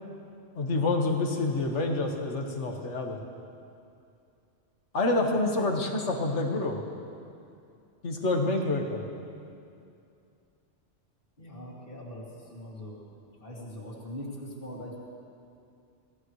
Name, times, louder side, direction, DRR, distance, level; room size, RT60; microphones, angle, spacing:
voice 1, 0.6-3.2 4.9-6.8 8.0-9.0, left 2 dB, 75° left, 2 dB, 1.8 m, -27 dB
voice 2, 11.4-13.0 13.4-15.0, left 1 dB, 45° left, -5 dB, 2.9 m, -41 dB
25.0 x 17.5 x 3.2 m, 2.5 s
omnidirectional pair, 1.2 m